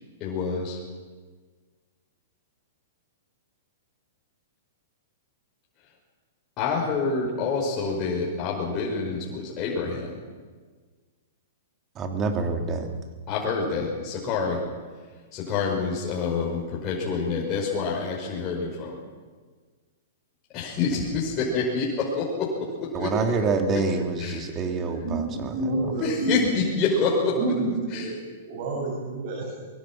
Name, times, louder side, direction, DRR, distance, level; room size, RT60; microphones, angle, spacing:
voice 1, 0.2-0.8 6.6-10.1 13.3-14.6 15.3-18.9 20.5-22.5 23.0-23.1 24.2-24.5 26.0-27.4 27.9-28.1, left 4 dB, 30° left, -4 dB, 5.5 m, -27 dB
voice 2, 11.9-12.9 22.9-25.5, right 4 dB, 25° right, 4 dB, 3.2 m, -26 dB
voice 3, 24.4-26.4 27.3-28.2 28.4-29.5, right 2 dB, 55° right, -1 dB, 7.0 m, -29 dB
23.5 x 23.0 x 6.2 m, 1.5 s
hypercardioid pair, 135°, 0 cm